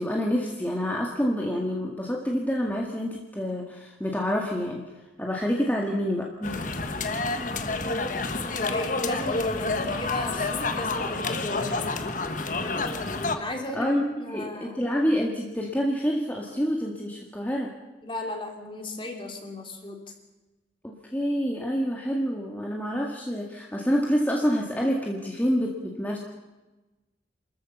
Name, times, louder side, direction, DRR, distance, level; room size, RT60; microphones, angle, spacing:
voice 1, 0.0-4.8 5.2-6.7 13.7-17.7 20.8-26.2, equal, 10° left, -1 dB, 1.9 m, -27 dB
sound 1, 6.4-13.4, left 3 dB, 45° left, 1.4 m, -29 dB
voice 2, 8.4-11.9 13.3-13.9 14.2-14.8 18.0-20.0, left 1 dB, 30° left, 3 dB, 3.0 m, -35 dB
28.0 x 14.0 x 7.1 m, 1.1 s
head